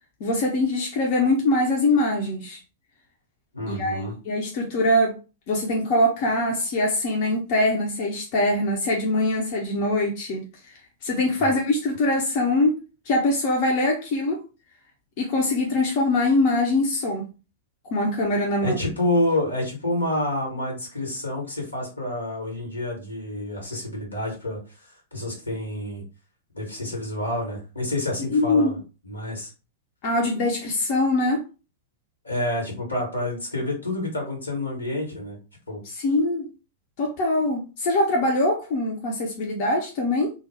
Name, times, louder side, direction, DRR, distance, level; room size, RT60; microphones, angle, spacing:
voice 1, 0.2-2.6 3.7-5.2 5.5-14.4 15.2-17.3 17.9-18.8 28.3-28.7 30.0-31.4 35.8-36.5 37.0-40.3, left 2 dB, 45° left, -1 dB, 0.6 m, -23 dB
voice 2, 3.5-4.1 11.4-11.5 18.6-24.6 25.1-26.0 26.5-29.5 32.2-35.4 35.7-35.8, left 1 dB, 80° left, -1 dB, 1.1 m, -28 dB
2.3 x 2.0 x 3.3 m, 0.32 s
figure-of-eight pair, 95°, 0 cm